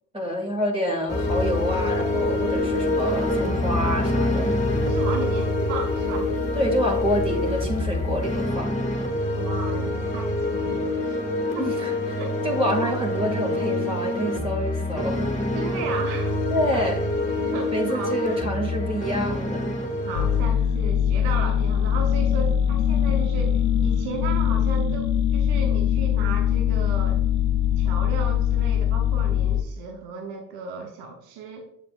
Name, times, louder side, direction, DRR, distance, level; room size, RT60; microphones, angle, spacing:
voice 1, 0.1-4.5 6.6-8.7 11.6-15.3 16.5-17.0 17.7-19.8, equal, 15° right, -1 dB, 2.2 m, -27 dB
sound 1, 1.1-20.4, left 1 dB, 20° left, 1.7 m, -26 dB
voice 2, 4.8-6.3 9.3-11.2 11.5-11.7 12.8-12.9 15.5-16.5 16.7-16.9 17.5-18.1 20.0-27.2 27.8-31.7, right 4 dB, 90° right, 2 dB, 1.0 m, -35 dB
sound 2, 20.1-29.6, left 9 dB, 90° left, 0.5 m, -22 dB
7.4 x 6.8 x 2.5 m, 0.73 s
supercardioid pair, 60°, 36 cm